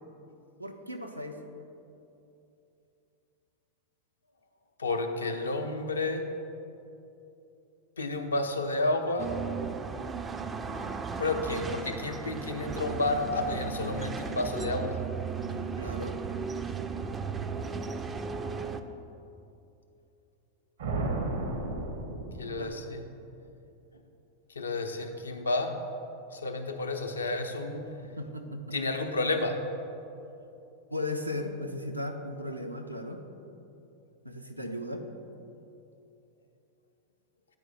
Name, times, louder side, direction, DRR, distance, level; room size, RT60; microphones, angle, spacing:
voice 1, 0.6-1.4 10.6-10.9 15.8-16.2 22.6-22.8 28.2-28.8 30.9-33.2 34.2-35.0, left 1 dB, 90° right, 4 dB, 0.5 m, -36 dB
voice 2, 4.8-6.2 8.0-9.3 11.2-15.0 22.4-23.0 24.6-25.7 26.3-27.9 28.7-29.6, left 2 dB, 75° left, 5 dB, 0.5 m, -31 dB
sound 1, 9.2-18.8, right 5 dB, 20° right, 0.3 m, -35 dB
sound 2, 20.8-23.1, right 2 dB, 60° right, 0.8 m, -33 dB
9.0 x 4.8 x 4.0 m, 2.8 s
figure-of-eight pair, 90°, 0 cm